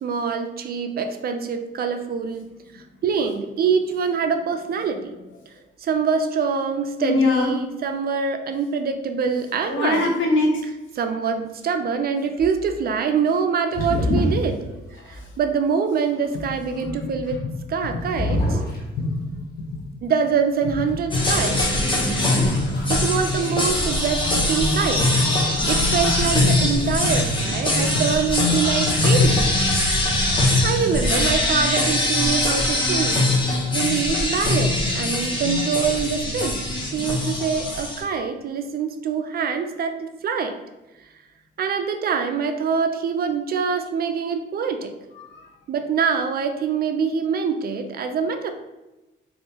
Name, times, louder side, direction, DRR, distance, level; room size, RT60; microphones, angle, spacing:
voice 1, 0.0-2.5 2.7-5.1 5.8-10.2 11.0-14.8 15.1-17.4 17.7-18.4 20.0-21.7 22.9-25.1 25.7-29.5 30.6-33.3 33.7-40.6 41.6-44.9 45.7-48.5, right 6 dB, 50° right, 6 dB, 0.4 m, -24 dB
voice 2, 7.0-7.6 9.7-10.5 19.0-19.1 19.7-19.8 25.5-25.6 45.2-45.4, left 2 dB, 75° left, 1 dB, 0.8 m, -21 dB
sound 1, 9.5-9.9 13.7-14.7 18.1-19.3 21.9-22.0 22.4-23.0 23.2-23.8, left 1 dB, 50° left, 1.2 m, -25 dB
sound 2, 21.1-38.0, left 2 dB, 25° left, 0.9 m, -22 dB
3.5 x 2.6 x 2.8 m, 1.0 s
cardioid pair, 90°, 20 cm